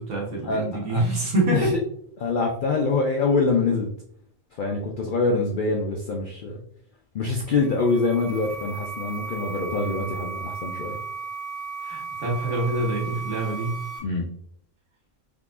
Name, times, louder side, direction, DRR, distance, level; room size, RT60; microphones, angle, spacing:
voice 1, 0.0-1.7 11.8-13.7, right 2 dB, 65° right, -3 dB, 1.2 m, -26 dB
voice 2, 2.2-3.9 4.6-6.6 7.1-11.0 14.0-14.3, left 3 dB, 90° left, 1 dB, 0.4 m, -24 dB
sound 1, 7.5-14.0, right 4 dB, 40° right, 0.8 m, -35 dB
3.7 x 2.8 x 2.4 m, 0.66 s
omnidirectional pair, 1.4 m